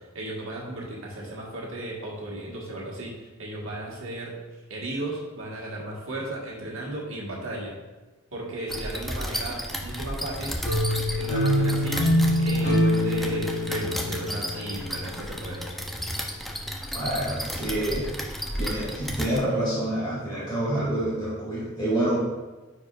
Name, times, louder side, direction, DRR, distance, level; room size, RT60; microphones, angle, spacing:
voice 1, 0.0-4.4 4.7-7.7 8.3-10.6 11.2-12.0 12.4-15.7, right 1 dB, 80° right, -4 dB, 1.6 m, -35 dB
sound 1, 8.7-19.4, equal, ahead, 0.5 m, -33 dB
sound 2, 10.6-15.5, equal, 55° left, 1.6 m, -25 dB
voice 2, 16.9-18.1 18.6-22.2, right 1 dB, 20° left, -9 dB, 2.1 m, -27 dB
9.4 x 4.6 x 2.4 m, 1.2 s
head